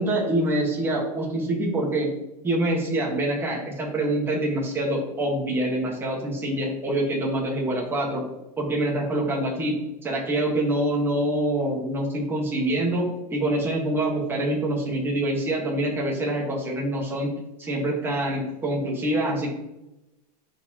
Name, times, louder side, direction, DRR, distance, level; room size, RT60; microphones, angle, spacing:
voice 1, 0.0-2.1 2.4-8.3 8.6-9.8 10.0-17.3 17.6-19.5, right 1 dB, 10° right, -2 dB, 1.5 m, -25 dB
12.0 x 4.5 x 2.9 m, 0.95 s
supercardioid pair, 160°, 21 cm